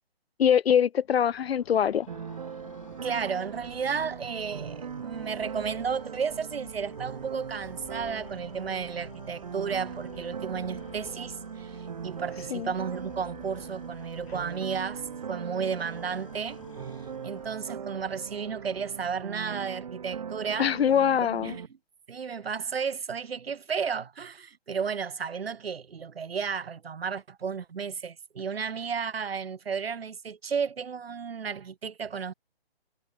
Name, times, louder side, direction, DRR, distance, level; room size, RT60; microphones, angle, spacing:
voice 1, 0.4-2.1 12.5-12.7 20.6-21.6, left 8 dB, 75° left, 0.6 m, -23 dB
sound 1, 1.0-18.0, left 9 dB, 30° left, 3.8 m, -52 dB
sound 2, 2.1-21.7, right 7 dB, 45° right, 1.8 m, -40 dB
voice 2, 3.0-16.6 17.2-20.7 21.4-21.7 22.1-32.3, right 6 dB, 70° right, 1.3 m, -33 dB
sound 3, 12.0-16.4, right 10 dB, 10° right, 4.5 m, -66 dB
hypercardioid pair, 170°, 31 cm